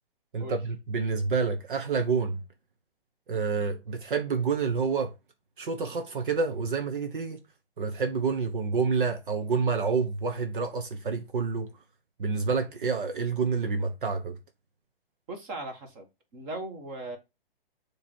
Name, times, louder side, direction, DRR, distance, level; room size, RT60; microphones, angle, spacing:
voice 1, 0.3-2.4 3.3-5.1 5.6-7.4 7.8-11.7 12.2-14.4, right 5 dB, 60° right, 1.1 m, -28 dB
voice 2, 15.3-16.1 16.3-17.2, right 2 dB, 20° right, 1.3 m, -38 dB
7.2 x 3.3 x 4.5 m
hypercardioid pair, 155°, 30 cm